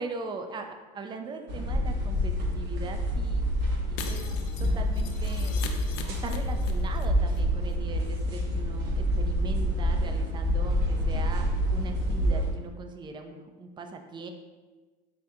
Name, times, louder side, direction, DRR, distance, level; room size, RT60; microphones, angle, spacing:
voice 1, 0.0-3.4 3.9-4.3 4.6-5.5 6.1-14.3, right 4 dB, 20° right, 6 dB, 0.4 m, -40 dB
sound 1, 1.5-12.5, equal, 60° right, 0.9 m, -27 dB
Shatter, 4.0-7.1 7.3-7.4 7.7-7.8, left 6 dB, 70° left, 0.5 m, -41 dB
4.2 x 3.3 x 2.4 m, 1.3 s
hypercardioid pair, 85°, 21 cm